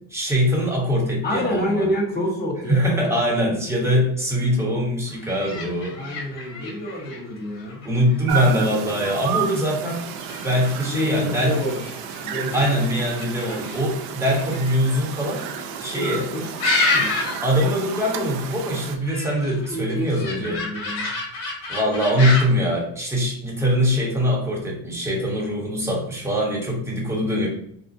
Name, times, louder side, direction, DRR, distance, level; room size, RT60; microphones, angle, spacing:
voice 1, 0.1-1.9 2.7-6.0 7.8-10.0 10.4-11.5 12.5-15.5 15.8-16.3 17.4-20.6 21.7-27.5, equal, 5° right, -3 dB, 0.9 m, -22 dB
voice 2, 1.2-2.9 6.0-7.9 10.8-11.8 12.2-12.6 15.9-16.5 16.9-17.1 19.7-21.1 27.1-27.4, equal, 25° left, -2 dB, 1.0 m, -28 dB
sound 1, 5.1-17.6 17.8-18.2 18.6-22.6, left 3 dB, 85° left, 1.2 m, -30 dB
sound 2, 8.3-19.0, right 7 dB, 75° right, 0.5 m, -32 dB
4.0 x 2.1 x 2.5 m, 0.68 s
cardioid pair, 135°, 38 cm